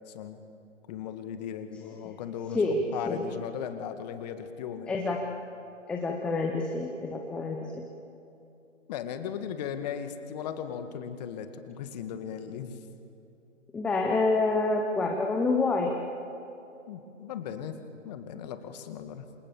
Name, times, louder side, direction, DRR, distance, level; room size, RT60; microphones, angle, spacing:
voice 1, 0.1-0.4 0.9-4.9 8.9-12.8 16.9-17.8 18.0-19.3, left 8 dB, 35° left, 8 dB, 2.0 m, -37 dB
voice 2, 4.9-5.2 5.9-7.8 13.7-15.9, left 3 dB, 5° left, 1 dB, 0.6 m, -27 dB
27.5 x 27.5 x 7.2 m, 2.8 s
figure-of-eight pair, 135°, 38 cm